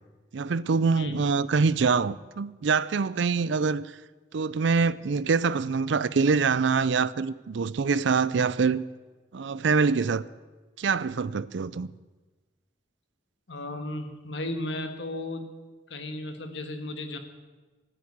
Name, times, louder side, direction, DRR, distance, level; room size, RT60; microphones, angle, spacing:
voice 1, 0.3-3.9 4.3-8.8 9.3-10.2 10.8-11.9, right 5 dB, 70° right, 0.5 m, -25 dB
voice 2, 13.5-15.5 15.9-17.2, left 1 dB, 65° left, 1.6 m, -34 dB
14.5 x 9.6 x 8.7 m
head